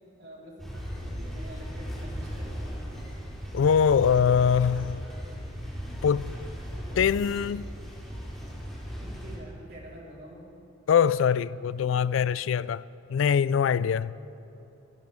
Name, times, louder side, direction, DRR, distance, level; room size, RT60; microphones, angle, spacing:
voice 1, 0.2-3.2 9.0-10.5, right 1 dB, 55° right, 4.1 m, -47 dB
sound 1, 0.6-9.4, equal, ahead, 3.7 m, -37 dB
voice 2, 3.5-5.1 6.0-6.3 7.0-7.6 10.9-12.8 13.1-14.1, left 7 dB, 85° left, 0.3 m, -23 dB
25.0 x 15.5 x 3.6 m
head